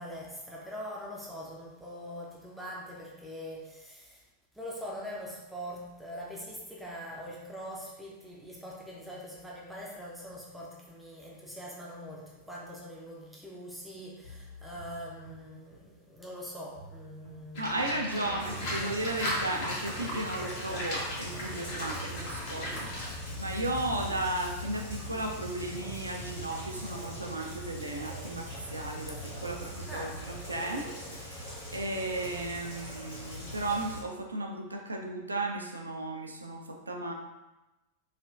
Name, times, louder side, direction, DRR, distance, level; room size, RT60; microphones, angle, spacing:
voice 1, 0.0-4.2 4.5-17.8 18.1-18.4 22.7-22.9 29.9-30.2, equal, ahead, -4 dB, 0.4 m, -43 dB
sound 1, 14.2-16.4 16.7-20.4 20.7-24.4 24.7-28.4 28.7-30.3, right 1 dB, 80° left, 1.5 m, -51 dB
Livestock farm animals working animals, 17.5-23.1, left 1 dB, 50° left, 0.7 m, -36 dB
voice 2, 17.6-22.9 23.4-37.1, right 2 dB, 80° right, 2 dB, 0.3 m, -35 dB
Rain, 18.4-34.0, left 1 dB, 65° left, 1.4 m, -41 dB
3.1 x 2.1 x 2.4 m, 1.0 s
figure-of-eight pair, 90°, 0 cm